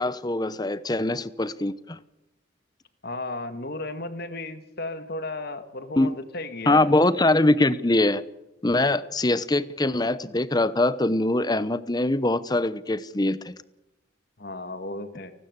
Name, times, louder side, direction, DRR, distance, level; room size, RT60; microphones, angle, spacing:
voice 1, 0.0-2.0 6.0-6.1 6.7-8.2 8.6-13.5, left 2 dB, 20° left, 16 dB, 0.8 m, -23 dB
voice 2, 3.0-6.9 14.4-15.3, left 2 dB, 50° left, 10 dB, 2.0 m, -34 dB
30.0 x 12.5 x 8.1 m, 0.96 s
head